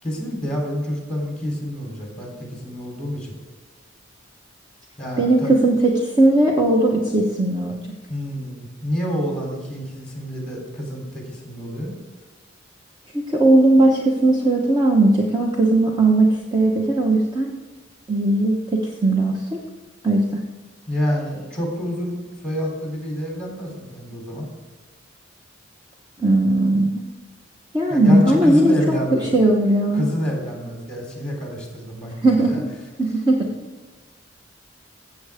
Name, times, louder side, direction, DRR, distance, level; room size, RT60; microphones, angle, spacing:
voice 1, 0.0-3.3 5.0-5.5 8.1-11.9 20.9-22.2 22.4-24.5 27.9-29.3 29.9-32.6, equal, 5° left, -1 dB, 3.5 m, -28 dB
voice 2, 5.2-7.8 13.1-17.5 18.1-19.6 20.0-20.4 26.2-27.1 27.7-30.0 32.2-32.7 33.0-33.5, right 2 dB, 20° right, -1 dB, 1.0 m, -18 dB
15.0 x 7.8 x 3.6 m, 1.3 s
head